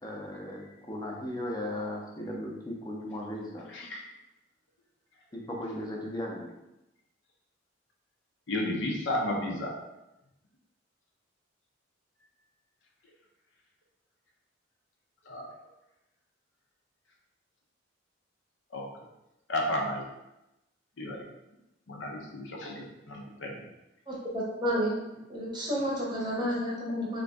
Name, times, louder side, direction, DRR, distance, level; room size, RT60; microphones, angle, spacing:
voice 1, 0.0-3.6 5.3-6.5, left 1 dB, 20° left, -2 dB, 0.6 m, -37 dB
voice 2, 3.7-4.0 8.5-9.7 15.3-15.5 18.7-18.9 19.5-20.0 21.0-21.3 21.9-23.5, left 1 dB, 70° left, 0 dB, 0.6 m, -32 dB
voice 3, 24.1-24.9 25.3-27.2, equal, 20° right, -4 dB, 0.8 m, -30 dB
3.0 x 2.6 x 3.4 m, 0.92 s
head